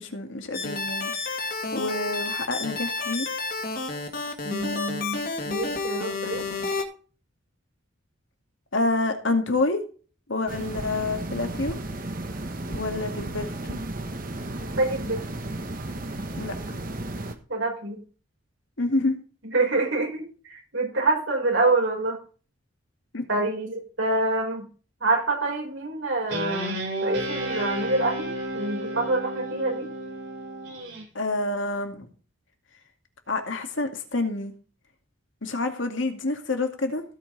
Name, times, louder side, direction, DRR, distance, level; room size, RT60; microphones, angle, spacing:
voice 1, 0.0-3.3 8.7-9.8 10.3-11.7 12.7-13.8 16.4-16.8 18.8-19.2 23.1-23.3 31.1-32.1 33.3-34.5 35.4-37.0, left 2 dB, 70° left, 5 dB, 2.2 m, -28 dB
sound 1, 0.5-6.8, left 3 dB, 45° left, 2.1 m, -30 dB
voice 2, 4.4-6.4 14.6-15.2 17.5-18.0 19.5-22.2 23.3-24.7 25.0-29.9, right 2 dB, 75° right, 0 dB, 5.5 m, -26 dB
sound 2, 10.5-17.3, right 1 dB, 45° right, 1.3 m, -34 dB
Guitar, 26.3-31.0, right 1 dB, 60° right, 4.8 m, -32 dB
16.5 x 5.7 x 4.0 m, 0.38 s
head